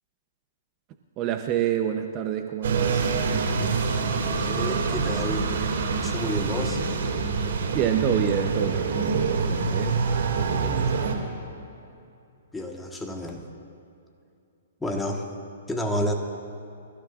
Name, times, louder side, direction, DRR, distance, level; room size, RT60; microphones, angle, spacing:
voice 1, 1.2-3.2 7.7-10.0 10.4-11.2, right 10 dB, 30° right, 5 dB, 0.7 m, -28 dB
sound 1, 2.6-11.1, right 4 dB, 70° right, 2.4 m, -26 dB
voice 2, 4.3-5.5 6.0-6.8 12.5-13.5 14.8-15.3 15.7-16.1, equal, 5° left, 1 dB, 1.5 m, -30 dB
27.5 x 15.0 x 2.5 m, 2.6 s
hypercardioid pair, 145°, 0 cm